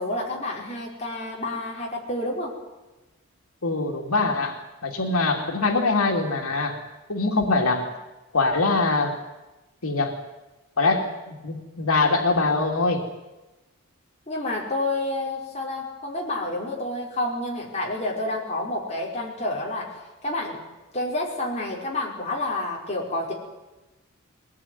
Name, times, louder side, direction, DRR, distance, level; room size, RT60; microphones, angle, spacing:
voice 1, 0.0-2.5 14.3-19.9 20.2-20.6 20.9-23.3, left 2 dB, 30° left, -2 dB, 5.4 m, -29 dB
voice 2, 3.6-6.8 7.1-7.9 8.3-9.1 9.8-10.2 10.8-13.0, left 3 dB, 90° left, 2 dB, 2.8 m, -23 dB
22.0 x 18.0 x 9.5 m, 1.1 s
head